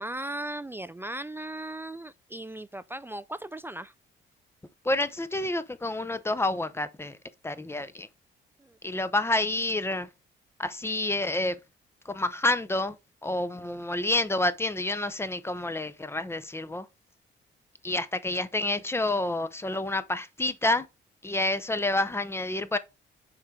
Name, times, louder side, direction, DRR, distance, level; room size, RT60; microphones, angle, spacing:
voice 1, 0.0-3.9 8.6-8.8, right 1 dB, 10° right, 0.3 m, -37 dB
voice 2, 4.8-7.2 7.4-8.1 8.8-10.1 10.6-11.6 12.1-13.0 13.2-16.9 17.8-20.8 21.2-22.8, left 2 dB, 10° left, 0.7 m, -28 dB
6.5 x 4.4 x 3.7 m
cardioid pair, 90°, 20 cm